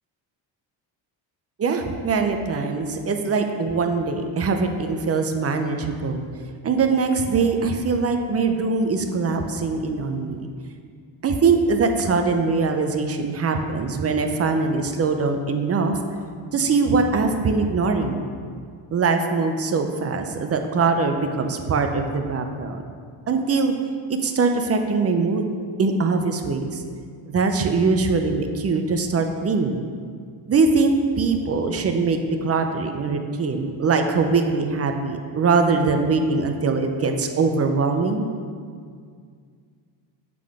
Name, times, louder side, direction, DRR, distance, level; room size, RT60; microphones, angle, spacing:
voice 1, 1.6-6.2 6.6-10.4 11.2-16.0 16.5-18.3 18.9-22.8 23.3-23.7 24.1-25.5 25.8-26.8 27.3-29.8 30.5-38.3, right 4 dB, 30° right, 5 dB, 0.6 m, -22 dB
7.6 x 3.8 x 4.9 m, 2.1 s
cardioid pair, 100°, 45 cm